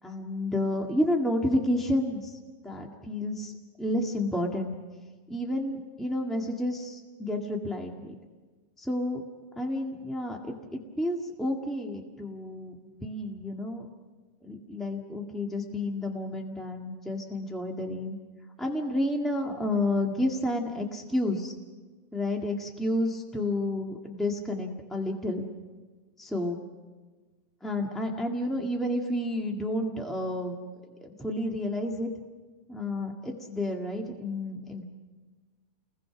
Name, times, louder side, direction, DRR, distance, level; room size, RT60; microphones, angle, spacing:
voice 1, 0.0-2.4 2.6-3.5 3.8-4.7 5.3-8.2 8.8-9.2 9.6-13.9 14.4-18.2 18.6-21.5 22.1-25.5 26.2-26.6 27.6-30.6 31.0-32.1 32.7-34.8, left 1 dB, ahead, 1 dB, 0.5 m, -30 dB
30.0 x 21.5 x 6.0 m, 1.4 s
omnidirectional pair, 3.9 m